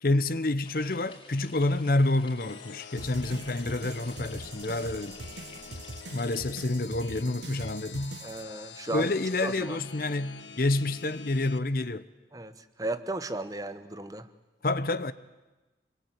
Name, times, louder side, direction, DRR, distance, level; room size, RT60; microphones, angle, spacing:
voice 1, 0.0-5.2 6.1-8.2 8.9-12.1 14.6-15.1, left 2 dB, 50° left, 0.8 m, -28 dB
sound 1, 0.6-6.4, left 3 dB, 30° left, 5.0 m, -52 dB
sound 2, 2.4-11.6, left 6 dB, 90° left, 1.3 m, -47 dB
sound 3, 3.0-8.4, right 2 dB, 75° right, 1.2 m, -43 dB
voice 2, 8.2-9.1 9.4-9.8 12.3-14.3, right 2 dB, 20° right, 1.0 m, -35 dB
27.0 x 22.0 x 9.3 m
head